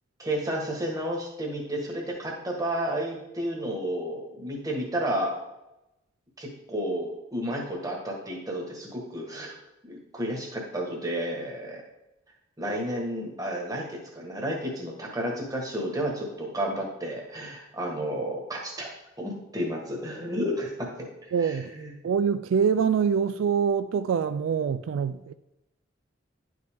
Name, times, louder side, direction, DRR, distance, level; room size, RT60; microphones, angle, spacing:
voice 1, 0.2-5.3 6.4-9.5 9.8-11.8 12.6-18.9 19.2-20.9 21.2-21.9, equal, 15° right, 1.4 m, -31 dB
voice 2, 21.3-21.7 22.0-25.3, right 6 dB, 75° right, 0.3 m, -25 dB
10.5 x 5.3 x 3.6 m
head